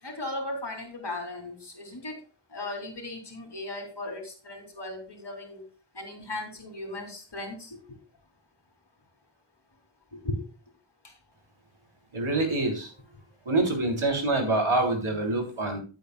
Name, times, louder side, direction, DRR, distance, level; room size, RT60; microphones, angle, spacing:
voice 1, 0.0-2.2 2.5-5.6 5.9-7.8 10.1-10.5 11.0-11.1, left 2 dB, 55° left, 3 dB, 2.9 m, -37 dB
voice 2, 12.1-12.9 13.4-15.8, right 2 dB, 85° right, 2 dB, 3.4 m, -26 dB
14.5 x 7.9 x 2.3 m, 0.35 s
wide cardioid pair, 55°, 48 cm